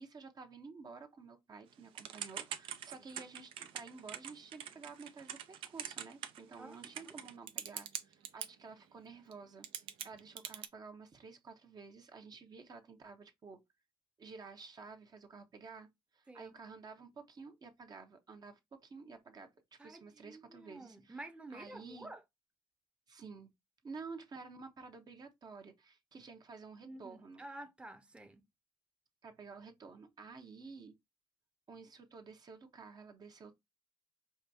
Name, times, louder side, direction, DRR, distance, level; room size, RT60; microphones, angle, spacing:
voice 1, 0.0-9.7 10.0-13.6 14.2-15.9 16.1-21.2 21.5-22.1 23.1-23.5 23.8-27.4 29.2-31.0 31.7-33.6, right 4 dB, 50° right, 0.8 m, -51 dB
Typing / Telephone, 2.0-8.5 9.3-9.4 9.6-10.7, right 9 dB, 85° right, 0.5 m, -43 dB
voice 2, 19.8-22.2 26.8-28.4, right 2 dB, 10° right, 0.6 m, -50 dB
4.8 x 2.3 x 2.6 m
supercardioid pair, 65°, 9 cm